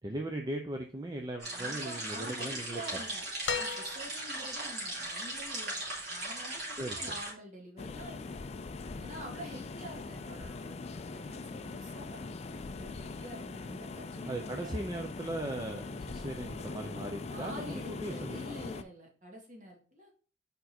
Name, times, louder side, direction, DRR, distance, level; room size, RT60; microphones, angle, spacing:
voice 1, 0.0-3.0 6.8-7.0 14.3-18.4, right 1 dB, 20° right, 3 dB, 0.6 m, -38 dB
sound 1, 1.4-7.3, right 2 dB, 65° right, 3.4 m, -38 dB
voice 2, 1.5-5.7 6.1-8.4 9.0-14.8 17.3-20.2, equal, 45° right, 0 dB, 2.1 m, -47 dB
sound 2, 3.5-4.5 6.0-6.1, left 6 dB, 85° left, 0.8 m, -36 dB
sound 3, 7.8-18.8, left 3 dB, 35° left, 0.4 m, -42 dB
5.3 x 4.5 x 4.4 m, 0.38 s
head